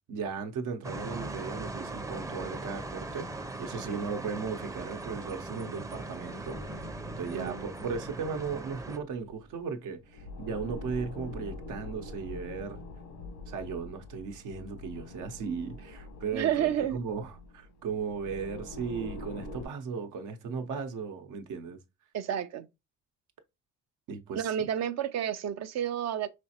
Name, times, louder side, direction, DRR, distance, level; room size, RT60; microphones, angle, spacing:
voice 1, 0.1-12.8 13.5-21.8 24.1-24.5, right 5 dB, 85° right, 0.9 m, -36 dB
sound 1, 0.8-9.0, right 2 dB, 10° right, 0.5 m, -39 dB
sound 2, 6.5-9.6 9.9-19.7, left 2 dB, 80° left, 1.2 m, -45 dB
voice 2, 7.3-7.6 16.3-17.0 22.1-22.7 24.3-26.3, right 10 dB, 60° right, 0.5 m, -30 dB
5.0 x 3.2 x 2.8 m
cardioid pair, 90°, 30 cm